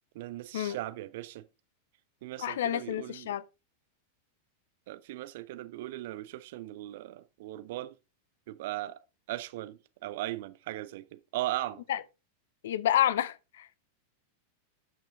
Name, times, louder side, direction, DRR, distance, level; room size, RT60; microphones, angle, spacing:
voice 1, 0.1-1.5 2.2-3.3 4.9-7.9 8.5-9.0 9.3-11.8, right 15 dB, 50° right, 0.8 m, -38 dB
voice 2, 2.4-3.4 11.9-12.0 12.6-13.7, left 11 dB, 60° left, 0.6 m, -29 dB
12.5 x 6.0 x 3.7 m
figure-of-eight pair, 90°, 0 cm